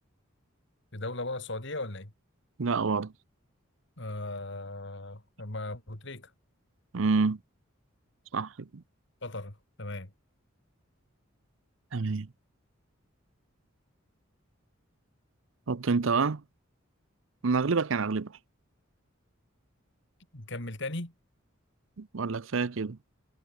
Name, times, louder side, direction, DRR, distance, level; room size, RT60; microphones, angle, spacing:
voice 1, 0.9-2.1 4.0-6.3 9.2-10.1 20.3-21.1, left 2 dB, 60° left, 3.3 m, -37 dB
voice 2, 2.6-3.1 6.9-7.4 8.3-8.8 11.9-12.3 15.7-16.4 17.4-18.4 22.0-23.0, right 4 dB, 70° right, 0.7 m, -28 dB
head